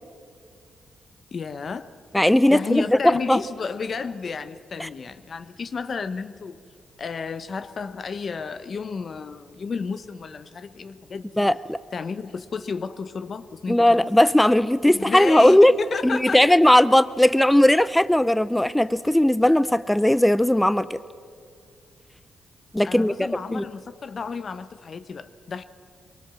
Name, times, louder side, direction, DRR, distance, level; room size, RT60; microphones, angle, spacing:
voice 1, 1.3-2.0 2.5-6.6 7.0-11.5 11.9-14.0 14.9-16.7 22.8-25.6, left 5 dB, 55° left, 0.9 m, -32 dB
voice 2, 2.1-3.4 4.8-4.9 11.4-11.8 13.7-15.7 16.0-21.0 22.7-23.7, left 1 dB, 10° left, 0.5 m, -18 dB
22.0 x 19.0 x 7.5 m
supercardioid pair, 50°, 0 cm